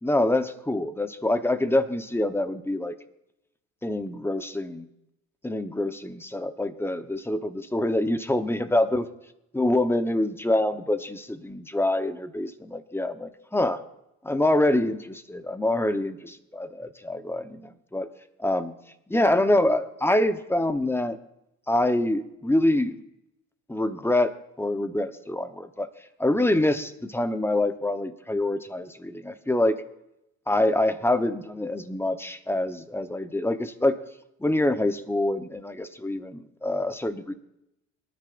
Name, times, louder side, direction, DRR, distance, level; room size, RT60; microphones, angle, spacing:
voice 1, 0.0-2.9 3.8-4.9 5.4-9.1 9.5-13.8 14.2-16.2 16.6-18.1 18.4-18.7 19.1-21.2 21.7-22.9 23.7-25.9 26.2-29.8 30.5-34.0 34.4-37.3, left 1 dB, 10° left, 9 dB, 1.0 m, -25 dB
22.0 x 10.0 x 2.6 m, 0.86 s
supercardioid pair, 80°, 30 cm